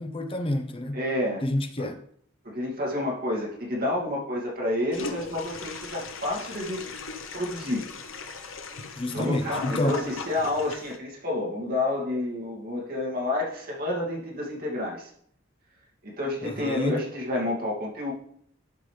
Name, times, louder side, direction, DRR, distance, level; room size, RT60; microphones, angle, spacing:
voice 1, 0.0-1.0 1.4-2.0 9.0-10.0 16.4-17.0, left 1 dB, 25° left, 0.7 m, -29 dB
voice 2, 0.9-1.4 1.8-1.9 2.4-6.9 7.3-7.8 9.1-15.1 16.0-18.1, left 1 dB, 50° right, 2.4 m, -29 dB
Toilet flush, 4.9-11.0, left 4 dB, 90° left, 0.9 m, -38 dB
11.5 x 5.3 x 3.3 m
head